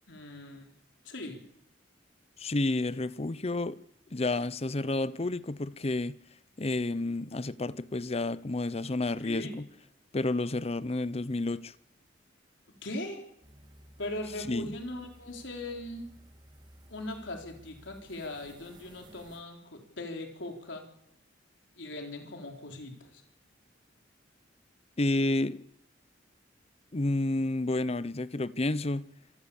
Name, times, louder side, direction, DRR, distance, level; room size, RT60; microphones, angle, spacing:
voice 1, 0.1-0.7 1.0-1.4 9.2-9.5 12.8-13.2 14.0-16.1 16.9-20.8 21.8-23.2, left 1 dB, 80° left, 4.0 m, -39 dB
voice 2, 2.4-3.8 4.1-6.2 6.6-9.7 10.1-11.8 14.5-14.7 25.0-25.7 26.9-29.1, left 2 dB, 35° left, 0.7 m, -30 dB
sound 1, 13.4-19.4, right 1 dB, 25° right, 3.1 m, -56 dB
26.5 x 15.5 x 7.1 m
head